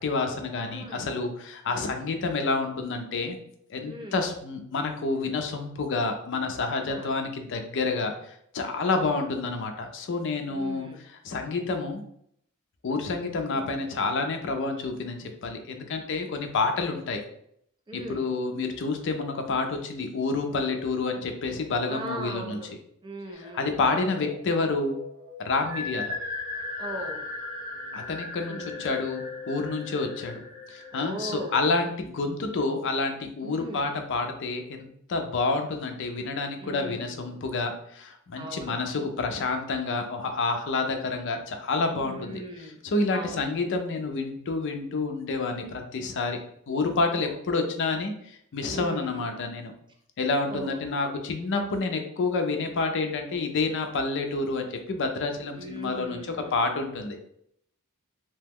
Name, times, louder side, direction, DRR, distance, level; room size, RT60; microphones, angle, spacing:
voice 1, 0.0-3.4 3.7-12.0 12.8-17.2 17.9-22.6 23.4-25.0 25.4-26.2 27.9-30.4 30.7-46.4 46.7-49.7 50.2-56.2 56.5-57.2, left 3 dB, 55° left, 5 dB, 0.4 m, -29 dB
voice 2, 0.6-1.0 3.9-4.2 6.9-7.1 8.8-9.2 10.5-11.1 13.5-13.8 17.9-18.3 21.9-22.7 23.0-24.0 26.8-27.2 28.5-28.9 30.9-31.6 33.4-33.9 36.6-37.4 38.4-39.1 42.0-42.8 43.1-43.4 47.0-47.3 48.7-49.3 50.5-50.8 55.5-56.6, right 1 dB, 20° right, 2 dB, 0.5 m, -39 dB
sound 1, 23.4-31.7, left 3 dB, 5° right, 0.9 m, -38 dB
2.9 x 2.1 x 3.4 m, 0.70 s
head